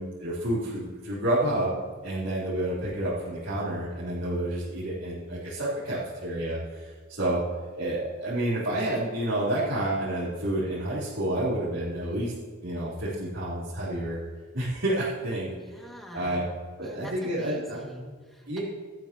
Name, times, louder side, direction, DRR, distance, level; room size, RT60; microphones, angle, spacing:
voice 1, 0.0-7.4 7.8-12.3 12.6-14.2 14.5-15.5 16.1-16.4 16.8-17.8 18.5-18.6, right 1 dB, 65° right, -10 dB, 3.8 m, -29 dB
voice 2, 15.5-16.4 16.8-18.6, left 1 dB, ahead, -2 dB, 2.3 m, -44 dB
17.5 x 12.5 x 3.1 m, 1.5 s
head